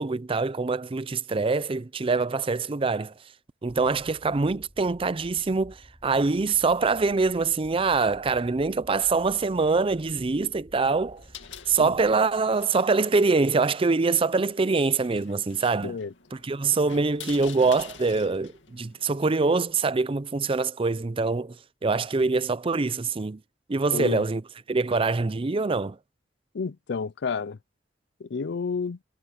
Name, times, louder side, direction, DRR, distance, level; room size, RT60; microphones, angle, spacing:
voice 1, 0.0-3.1 3.6-11.2 11.7-16.0 16.3-23.4 23.7-24.4 24.7-26.0, right 4 dB, 30° right, 0.5 m, -24 dB
sound 1, 3.6-12.1, equal, 15° left, 5.9 m, -52 dB
sound 2, 11.1-19.8, left 7 dB, 85° left, 2.3 m, -48 dB
voice 2, 15.8-16.1 23.9-24.2 26.5-27.6 28.2-29.0, left 5 dB, 65° left, 0.5 m, -30 dB
head